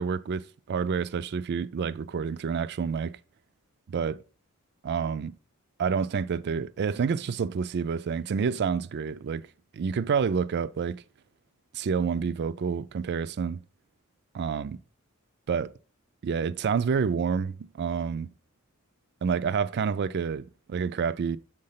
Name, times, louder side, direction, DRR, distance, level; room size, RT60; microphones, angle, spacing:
voice 1, 0.0-3.2 3.9-4.2 4.8-5.3 5.8-9.5 9.7-11.0 11.7-13.6 14.3-14.8 15.5-15.7 16.2-18.3 19.2-21.4, right 6 dB, 50° right, 0.3 m, -28 dB
6.5 x 3.7 x 5.7 m
head